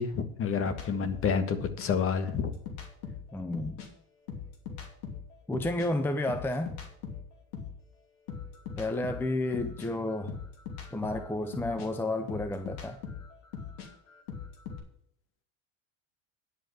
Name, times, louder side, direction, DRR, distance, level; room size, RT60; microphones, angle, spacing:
voice 1, 0.0-2.5, left 6 dB, 35° left, 10 dB, 1.5 m, -29 dB
sound 1, 0.7-3.9 4.2-7.8 8.3-14.8, left 6 dB, 65° left, 2.9 m, -41 dB
voice 2, 3.3-3.9 5.5-6.8 8.8-10.3 10.9-13.0, left 2 dB, 5° left, 8 dB, 0.7 m, -31 dB
10.0 x 5.3 x 7.8 m, 0.68 s
supercardioid pair, 110°, 36 cm